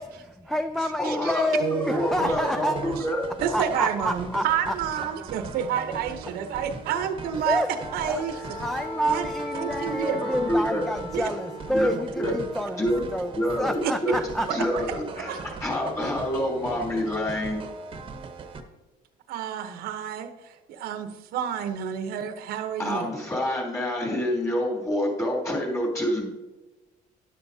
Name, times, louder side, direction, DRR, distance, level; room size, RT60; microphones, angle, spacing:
voice 1, 0.0-2.8 3.5-4.8 6.3-6.6 7.4-14.7, equal, ahead, 9 dB, 0.3 m, -29 dB
voice 2, 1.0-3.2 10.2-10.8 11.7-12.3 12.8-13.0 13.3-14.1 14.5-17.6 22.8-26.3, left 1 dB, 20° left, -3 dB, 3.2 m, -27 dB
sound 1, 1.6-18.6, right 4 dB, 35° right, 1.0 m, -40 dB
voice 3, 1.6-2.3 2.6-2.8 3.4-7.6 7.9-8.3 9.1-9.2 9.6-10.2 11.1-11.2 12.3-12.4 14.7-14.8 15.3-15.4 19.3-20.3 20.7-23.1, right 8 dB, 80° right, 8 dB, 0.9 m, -29 dB
Wind instrument woodwind instrument, 7.4-11.9, left 2 dB, 80° left, 1.3 m, -37 dB
12.0 x 10.5 x 2.8 m, 1.1 s
cardioid pair, 140°, 16 cm